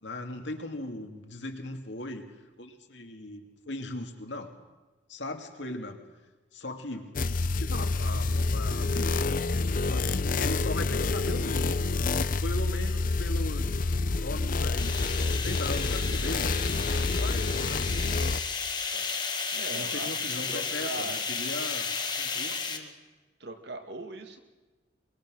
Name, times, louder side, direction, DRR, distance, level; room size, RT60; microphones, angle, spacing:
voice 1, 0.0-2.3 2.6-4.5 5.1-6.0 6.5-9.5 9.9-11.8 12.4-13.8 14.2-16.6 16.9-18.1 18.9-19.1 19.7-21.9 22.2-22.9, left 1 dB, 70° left, 4 dB, 2.5 m, -39 dB
sound 1, 7.2-18.4, left 3 dB, 45° left, 0.7 m, -28 dB
sound 2, 14.8-22.8, left 5 dB, 25° left, 1.8 m, -33 dB
voice 2, 19.5-20.1 20.5-21.2 23.4-24.4, right 2 dB, 60° right, 6 dB, 2.1 m, -39 dB
23.0 x 22.5 x 6.4 m, 1.2 s
head